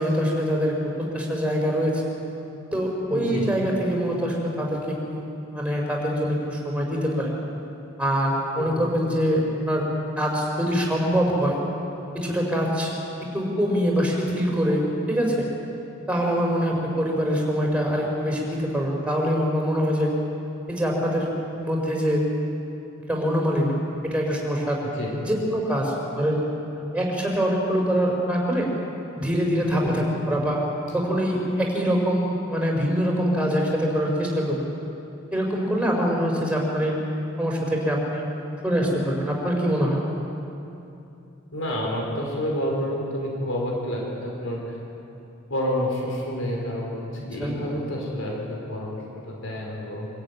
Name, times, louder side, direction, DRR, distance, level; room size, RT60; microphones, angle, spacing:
voice 1, 0.0-2.0 2.7-5.2 5.5-7.3 8.0-9.9 10.2-11.6 12.1-12.9 13.3-15.5 16.1-20.1 20.7-21.3 21.6-22.2 23.1-24.8 25.2-26.5 26.7-28.7 29.2-30.6 30.9-34.7 35.3-37.0 37.4-38.3 38.6-40.0 47.4-47.5, equal, 5° right, -1 dB, 4.8 m, -24 dB
voice 2, 3.1-3.5 8.6-8.9 24.9-25.2 29.8-30.1 41.5-44.8 45.5-47.0 47.3-49.0 49.2-50.1, equal, 80° left, -2 dB, 4.8 m, -29 dB
25.0 x 14.0 x 9.6 m, 2.8 s
head